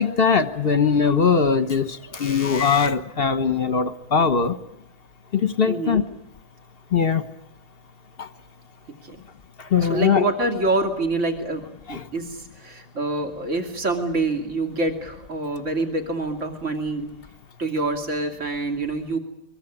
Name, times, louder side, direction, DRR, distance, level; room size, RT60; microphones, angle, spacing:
voice 1, 0.0-4.6 5.3-6.0 6.9-7.2 8.2-8.3 9.6-10.2 11.9-12.0, left 6 dB, 40° left, 11 dB, 1.3 m, -21 dB
voice 2, 5.7-6.0 9.0-9.2 9.8-17.1 17.6-19.2, right 2 dB, 45° right, 4 dB, 3.0 m, -26 dB
24.5 x 22.5 x 9.9 m, 0.78 s
omnidirectional pair, 1.7 m